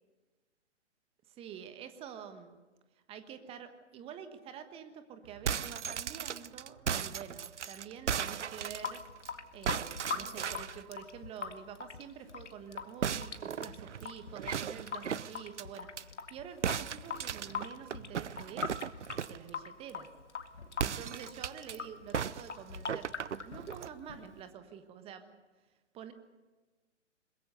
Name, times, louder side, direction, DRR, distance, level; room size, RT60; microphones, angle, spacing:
voice 1, 1.3-2.6 3.1-9.1 9.5-18.9 19.3-20.1 20.8-25.4 25.9-26.1, right 8 dB, 15° right, 9 dB, 1.3 m, -48 dB
sound 1, 5.3-9.3 9.7-10.8 13.0-16.0 16.6-19.5 20.7-21.7 22.1-23.9, right 8 dB, 70° right, 0.8 m, -36 dB
Water tap faucet / Sink (filling or washing) / Drip, 8.6-24.5, left 6 dB, 70° left, 2.0 m, -43 dB
22.0 x 21.5 x 6.9 m, 1.3 s
figure-of-eight pair, 130°, 37 cm